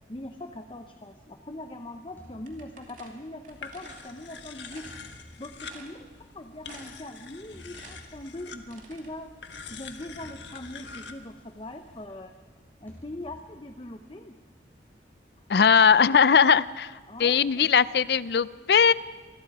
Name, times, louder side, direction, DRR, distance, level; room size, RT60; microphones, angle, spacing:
voice 1, 0.1-4.9 5.4-6.1 6.3-9.3 9.7-12.3 12.8-14.4 15.7-16.2 17.1-17.7, left 1 dB, 30° left, 6 dB, 0.8 m, -41 dB
sound 1, 2.2-3.4 4.8-6.4 7.5-8.7 10.2-11.4 12.9-14.0, equal, 10° left, 4.5 m, -53 dB
sound 2, 2.5-4.1 4.6-5.0 5.3-5.4 5.7-6.3 6.7-7.1 7.4-9.1, right 4 dB, 45° right, 2.4 m, -50 dB
sound 3, 3.5-12.1, left 5 dB, 90° left, 1.4 m, -45 dB
voice 2, 15.5-16.9 17.2-18.9, left 6 dB, 65° left, 18 dB, 0.5 m, -19 dB
26.0 x 20.5 x 4.8 m, 1.4 s
head